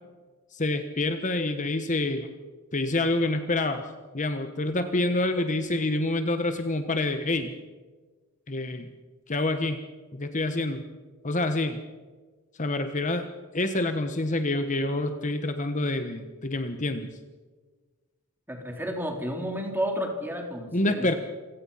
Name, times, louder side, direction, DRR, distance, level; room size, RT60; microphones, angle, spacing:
voice 1, 0.5-2.3 2.7-3.9 4.1-7.5 8.5-8.9 9.3-9.8 10.1-10.9 11.2-11.8 12.6-13.3 13.5-17.1 20.7-21.1, left 2 dB, 35° left, 8 dB, 1.2 m, -27 dB
voice 2, 18.5-21.1, equal, 10° right, 2 dB, 3.6 m, -31 dB
28.0 x 17.0 x 5.7 m, 1.3 s
head